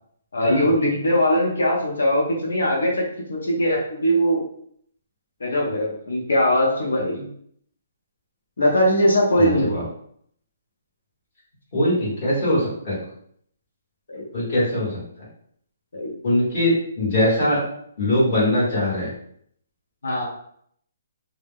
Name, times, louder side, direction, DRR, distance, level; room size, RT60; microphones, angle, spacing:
voice 1, 0.3-4.4 5.4-7.2 8.6-9.8 14.1-14.3 15.9-16.1 20.0-20.2, equal, 75° left, -2 dB, 0.7 m, -21 dB
voice 2, 9.3-9.8 11.7-13.0 14.3-15.0 16.2-17.6 18.0-19.1, left 1 dB, 25° left, -8 dB, 1.1 m, -21 dB
2.2 x 2.0 x 3.4 m, 0.65 s
hypercardioid pair, 180°, 0 cm